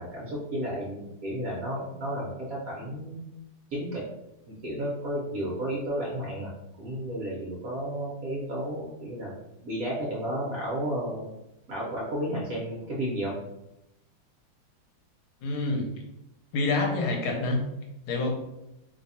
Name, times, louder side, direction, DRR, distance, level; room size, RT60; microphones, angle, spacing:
voice 1, 0.0-3.2 3.7-4.0 4.5-6.5 6.8-9.3 9.6-11.3 11.7-13.4, right 1 dB, 60° right, -5 dB, 1.0 m, -32 dB
voice 2, 15.4-15.9 16.5-17.6 18.1-18.3, left 2 dB, 80° left, 2 dB, 1.5 m, -27 dB
3.3 x 2.3 x 4.0 m, 0.89 s
omnidirectional pair, 2.3 m